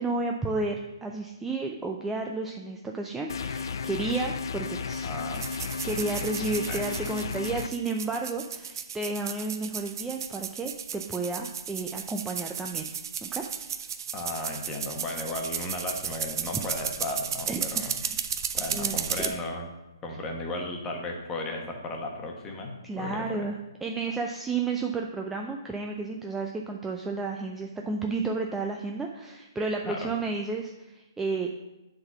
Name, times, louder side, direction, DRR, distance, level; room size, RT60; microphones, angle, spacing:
voice 1, 0.0-5.1 5.8-13.4 17.5-18.1 18.7-19.3 22.8-31.5, right 3 dB, 10° right, 1 dB, 0.5 m, -32 dB
sound 1, 3.3-7.7, left 5 dB, 55° left, 0.4 m, -34 dB
voice 2, 5.0-5.5 6.7-6.8 14.1-18.0 18.5-19.7 20.0-23.3 29.9-30.1, left 2 dB, 15° left, 1 dB, 1.3 m, -35 dB
sound 2, 5.3-19.3, right 8 dB, 50° right, 0.6 m, -34 dB
7.7 x 4.0 x 5.9 m, 1.0 s
figure-of-eight pair, 135°, 3 cm